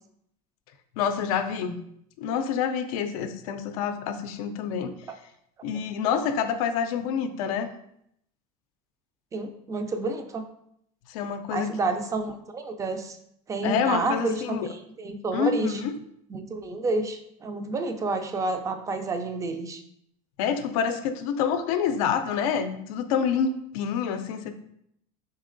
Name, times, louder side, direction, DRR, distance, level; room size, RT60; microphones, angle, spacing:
voice 1, 1.0-1.8 2.2-4.9 5.6-7.7 11.1-11.7 13.6-14.7 15.3-15.9 20.4-24.5, left 7 dB, 75° left, 8 dB, 0.4 m, -27 dB
voice 2, 9.3-10.5 11.5-13.2 13.5-15.8 16.3-19.8, right 3 dB, 15° right, 7 dB, 0.4 m, -29 dB
4.0 x 3.5 x 2.5 m, 0.73 s
supercardioid pair, 125°, 18 cm